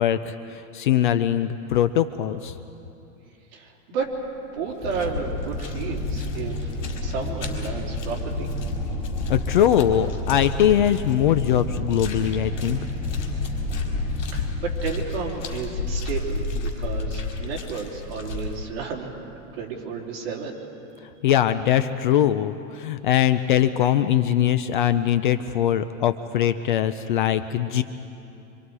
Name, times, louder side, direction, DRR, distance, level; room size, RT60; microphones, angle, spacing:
voice 1, 0.0-2.6 9.3-12.8 21.2-27.8, left 10 dB, 40° left, 11 dB, 0.4 m, -21 dB
voice 2, 3.5-4.1 4.5-6.7 7.0-8.5 14.3-19.1 19.6-20.6, right 5 dB, 50° right, -2 dB, 3.7 m, -32 dB
sound 1, 4.0-4.3 4.6-18.6, left 3 dB, 65° left, 4.4 m, -33 dB
sound 2, 4.8-16.9 18.0-18.2, left 1 dB, ahead, 2.6 m, -32 dB
26.0 x 26.0 x 4.8 m, 2.9 s
supercardioid pair, 175°, 39 cm